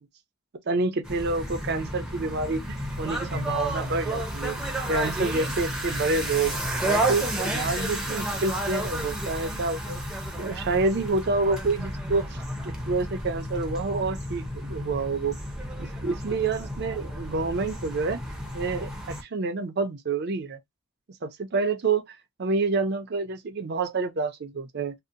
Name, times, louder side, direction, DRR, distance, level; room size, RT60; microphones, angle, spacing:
voice 1, 0.7-4.6 4.9-6.6 6.8-10.0 10.4-12.2 12.6-15.4 15.8-18.2 18.5-20.6 21.2-24.9, right 3 dB, 50° right, 0.5 m, -28 dB
sound 1, 1.0-19.2, right 1 dB, 5° right, 0.5 m, -31 dB
2.7 x 2.0 x 2.5 m
head